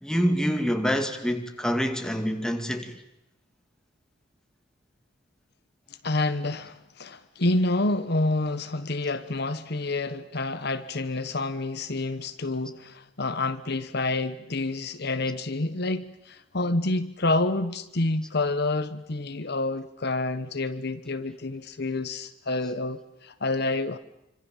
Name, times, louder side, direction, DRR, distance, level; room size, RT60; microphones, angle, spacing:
voice 1, 0.0-3.0, equal, 5° left, 2.4 m, -26 dB
voice 2, 6.0-24.0, left 2 dB, 60° left, 1.2 m, -28 dB
27.0 x 25.5 x 7.3 m
head